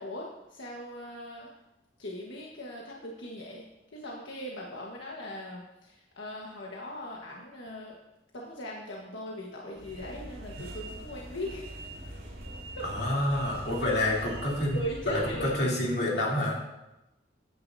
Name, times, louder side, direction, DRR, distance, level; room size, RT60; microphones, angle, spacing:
voice 1, 0.0-1.5 2.0-3.6 3.9-8.0 8.3-11.9 12.8-12.9 13.8-14.0 14.5-15.6, equal, 90° left, -2 dB, 1.4 m, -39 dB
sound 1, 9.7-15.7, right 1 dB, 80° right, 4.1 m, -43 dB
voice 2, 12.8-16.6, left 1 dB, 60° left, -4 dB, 3.1 m, -28 dB
15.5 x 9.5 x 2.7 m, 0.96 s
head